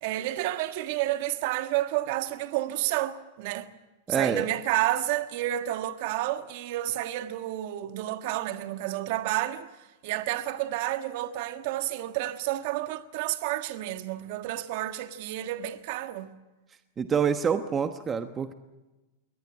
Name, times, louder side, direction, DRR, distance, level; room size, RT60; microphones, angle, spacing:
voice 1, 0.0-3.7 4.1-9.7 10.0-16.3, right 14 dB, 55° right, 1.5 m, -30 dB
voice 2, 4.1-4.5 17.0-18.5, right 7 dB, 20° right, 1.1 m, -26 dB
22.0 x 18.5 x 9.0 m
hypercardioid pair, 125°, 0 cm